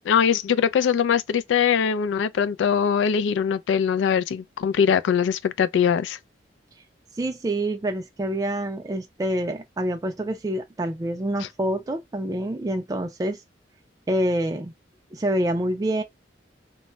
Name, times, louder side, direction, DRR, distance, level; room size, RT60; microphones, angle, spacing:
voice 1, 0.1-6.2, left 7 dB, 85° left, 0.3 m, -22 dB
voice 2, 7.2-13.4 14.1-14.7 15.1-16.0, right 1 dB, 20° right, 0.3 m, -26 dB
2.2 x 2.0 x 3.7 m
head